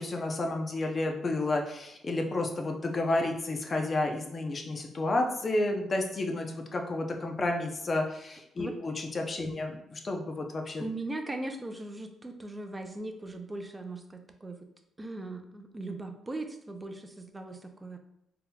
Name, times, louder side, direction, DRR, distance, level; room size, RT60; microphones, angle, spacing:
voice 1, 0.0-10.8, left 2 dB, 35° left, 3 dB, 0.6 m, -31 dB
voice 2, 10.8-14.6 15.0-18.0, right 2 dB, 20° right, 6 dB, 0.4 m, -39 dB
3.9 x 2.8 x 2.3 m, 0.79 s
cardioid pair, 90°, 0 cm